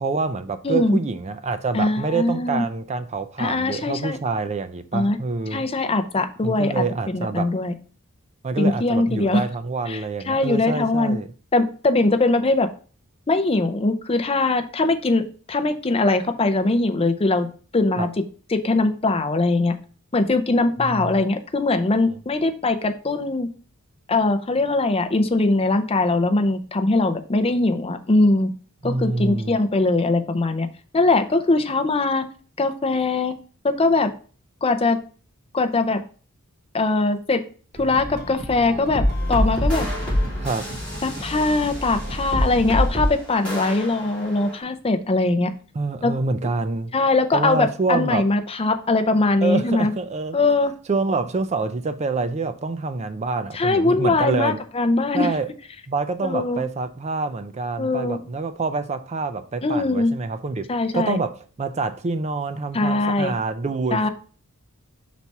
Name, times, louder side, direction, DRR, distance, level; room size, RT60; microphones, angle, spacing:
voice 1, 0.0-5.6 6.4-7.5 8.4-11.3 18.0-18.1 20.8-21.2 22.0-22.2 28.8-29.6 40.4-40.7 45.8-46.9 47.3-48.3 49.4-50.4 50.9-54.6 55.1-55.5 55.9-60.7 60.9-64.1, right 3 dB, 30° right, 0.4 m, -26 dB
voice 2, 0.6-1.0 1.7-2.7 3.4-4.2 4.9-5.2 5.5-7.7 8.6-9.4 9.9-10.0 10.3-11.2 11.5-12.7 13.3-17.5 17.7-18.2 18.5-19.8 20.1-23.5 24.1-28.5 28.8-30.7 30.9-32.2 32.6-33.3 33.6-34.1 34.6-35.0 35.5-36.0 36.7-37.4 37.8-39.9 41.0-45.5 46.0-46.1 46.9-49.9 50.3-50.7 53.5-55.3 56.2-56.6 57.8-58.2 59.6-60.1 60.7-61.2 62.7-63.3 63.9-64.1, left 2 dB, 25° left, 0.6 m, -21 dB
sound 1, 37.7-42.9, equal, 45° right, 1.8 m, -34 dB
sound 2, 38.9-44.6, equal, 5° left, 3.2 m, -26 dB
5.6 x 4.2 x 4.6 m
head